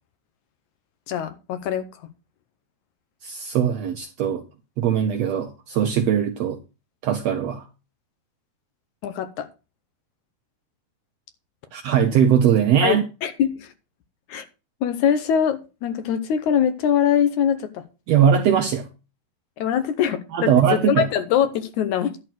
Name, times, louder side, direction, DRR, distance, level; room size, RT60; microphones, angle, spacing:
voice 1, 1.1-1.9 9.0-9.5 12.8-13.7 14.3-14.5 14.8-17.8 19.6-22.1, left 9 dB, 75° left, 10 dB, 2.0 m, -23 dB
voice 2, 3.2-4.4 4.8-6.6 7.0-7.7 11.7-13.0 18.1-18.9 20.3-21.1, right 8 dB, 75° right, 6 dB, 1.5 m, -20 dB
11.0 x 4.4 x 7.5 m, 0.31 s
omnidirectional pair, 3.8 m